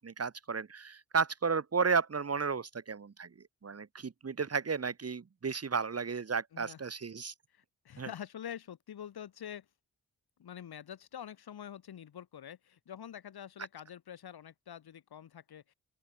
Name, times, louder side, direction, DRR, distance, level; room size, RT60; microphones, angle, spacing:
voice 1, 0.0-7.3 8.0-8.1, right 5 dB, 40° right, 1.5 m, -33 dB
voice 2, 7.5-9.6 10.4-15.7, left 9 dB, 80° left, 4.5 m, -46 dB
open air
cardioid pair, 50°, 37 cm